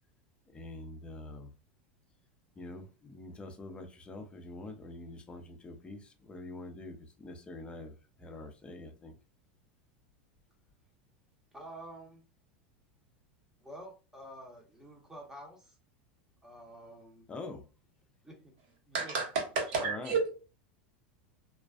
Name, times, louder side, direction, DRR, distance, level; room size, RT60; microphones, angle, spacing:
voice 1, 0.5-1.5 2.6-9.2 17.3-17.7 19.7-20.2, left 2 dB, 20° left, 0.5 m, -45 dB
voice 2, 11.5-12.2 13.6-15.8 16.4-17.3 18.2-18.5 18.9-19.2 19.8-20.0, right 1 dB, 10° right, 0.9 m, -48 dB
voice 3, 18.9-20.3, right 4 dB, 70° right, 1.0 m, -31 dB
2.4 x 2.3 x 2.3 m
hypercardioid pair, 105°, 5 cm